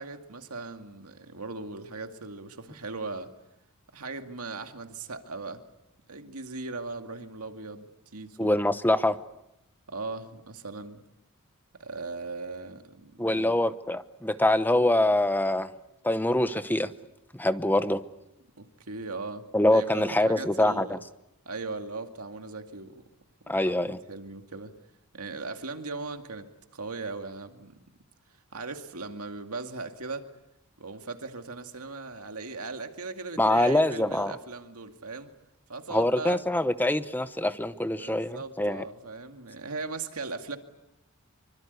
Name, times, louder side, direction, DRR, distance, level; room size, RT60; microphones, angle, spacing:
voice 1, 0.0-3.3 3.9-5.6 6.1-8.6 9.9-11.0 11.8-13.5 18.6-19.5 19.7-21.0 21.5-23.0 23.5-24.7 25.1-27.7 28.5-30.3 30.8-35.3 35.7-36.4 38.0-40.6, right 3 dB, 80° right, 6 dB, 2.2 m, -38 dB
voice 2, 8.4-9.2 13.2-15.7 16.0-16.9 17.3-18.0 19.5-21.0 23.5-24.0 33.4-34.3 35.9-38.8, left 1 dB, 10° left, 12 dB, 0.9 m, -24 dB
26.0 x 24.5 x 8.3 m, 0.86 s
head